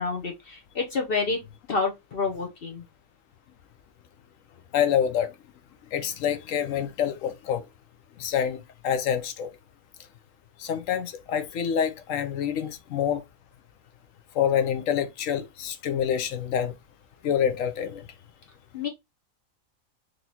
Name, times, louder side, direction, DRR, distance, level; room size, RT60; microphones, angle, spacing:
voice 1, 0.0-1.4 1.7-2.8 18.7-18.9, left 4 dB, 50° left, 0.8 m, -28 dB
voice 2, 4.7-5.3 5.9-7.7 8.2-9.5 10.6-13.2 14.3-16.7 17.2-18.0, left 8 dB, 75° left, 1.0 m, -27 dB
4.0 x 3.1 x 2.7 m
omnidirectional pair, 1.4 m